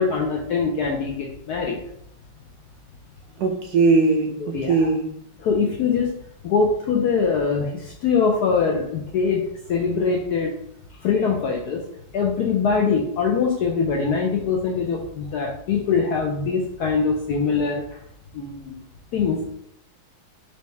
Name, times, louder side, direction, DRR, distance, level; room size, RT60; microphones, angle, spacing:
voice 1, 0.0-1.8 4.4-4.9 5.4-6.1 6.4-10.5 11.0-11.8 12.1-17.8 18.3-18.8 19.1-19.5, left 5 dB, 75° left, 0 dB, 0.9 m, -23 dB
voice 2, 3.4-4.3 4.7-5.1, right 3 dB, 70° right, 1 dB, 0.9 m, -19 dB
4.5 x 2.8 x 3.2 m, 0.73 s
omnidirectional pair, 2.1 m